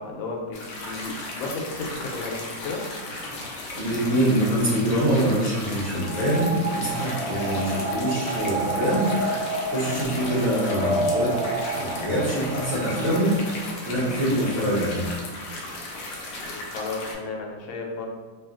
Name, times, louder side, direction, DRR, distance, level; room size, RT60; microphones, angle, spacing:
voice 1, 0.0-2.8 16.4-18.1, left 3 dB, 85° left, 0 dB, 1.4 m, -33 dB
sound 1, 0.5-17.1, left 2 dB, 70° left, 1.1 m, -36 dB
voice 2, 3.7-9.1 9.7-11.4 11.8-13.4 13.8-15.0, right 1 dB, 55° right, -9 dB, 1.0 m, -24 dB
sound 2, 5.9-13.6, right 2 dB, 90° right, 1.6 m, -30 dB
3.5 x 2.4 x 2.4 m, 1.5 s
omnidirectional pair, 2.1 m